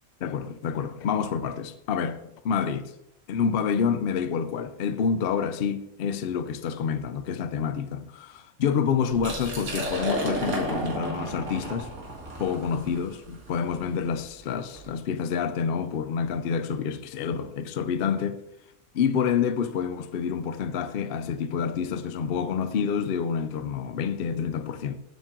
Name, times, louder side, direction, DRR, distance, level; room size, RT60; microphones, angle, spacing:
voice 1, 0.2-2.2 2.4-2.9 3.3-11.9 12.4-18.4 18.9-25.0, left 7 dB, 60° left, 0.6 m, -28 dB
Liquid, 9.1-14.9, right 1 dB, 80° right, 2.1 m, -33 dB
7.3 x 7.1 x 3.7 m
omnidirectional pair, 1.4 m